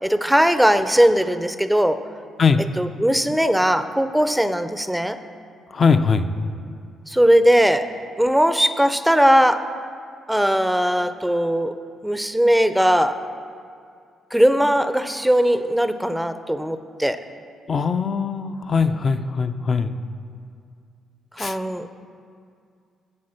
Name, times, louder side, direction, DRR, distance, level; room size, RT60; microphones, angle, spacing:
voice 1, 0.0-2.0 2.8-5.2 7.1-7.9 8.2-9.6 10.3-11.7 12.0-13.2 14.3-17.2 21.4-22.1, equal, 5° right, 11 dB, 0.5 m, -19 dB
voice 2, 5.7-6.3 17.7-19.9 21.4-21.6, left 5 dB, 45° left, 9 dB, 0.5 m, -20 dB
8.5 x 7.9 x 6.5 m, 2.3 s
cardioid pair, 90°, 0 cm